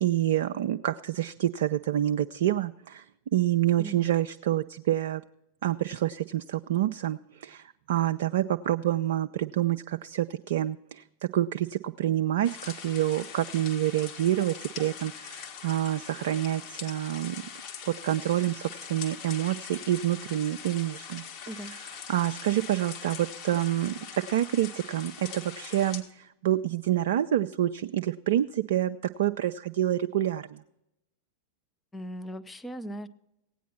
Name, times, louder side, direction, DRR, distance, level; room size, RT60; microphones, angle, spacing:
voice 1, 0.0-5.2 5.6-17.4 17.8-21.2 21.6-21.8 22.1-30.6, right 12 dB, 55° right, 9 dB, 0.3 m, -27 dB
voice 2, 3.8-4.2 21.5-21.7 31.9-33.1, right 1 dB, 10° left, 11 dB, 0.5 m, -39 dB
sound 1, 12.4-26.0, left 7 dB, 40° left, 1.7 m, -42 dB
16.5 x 9.2 x 4.3 m, 0.87 s
figure-of-eight pair, 90°, 0 cm